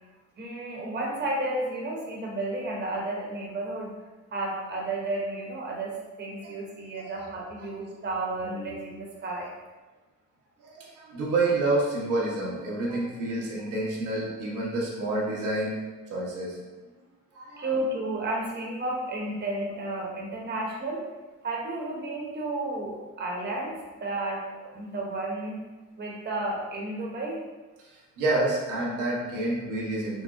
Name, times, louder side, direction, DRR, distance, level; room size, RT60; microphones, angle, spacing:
voice 1, 0.4-3.9 4.3-9.5 17.6-21.0 21.4-24.4 24.7-25.6 26.0-27.4, right 2 dB, 35° right, -2 dB, 0.9 m, -32 dB
voice 2, 10.6-15.8 16.1-16.6 17.3-17.7 28.2-30.2, right 2 dB, 85° right, -5 dB, 1.1 m, -28 dB
4.3 x 2.0 x 3.5 m, 1.2 s
cardioid pair, 90°, 30 cm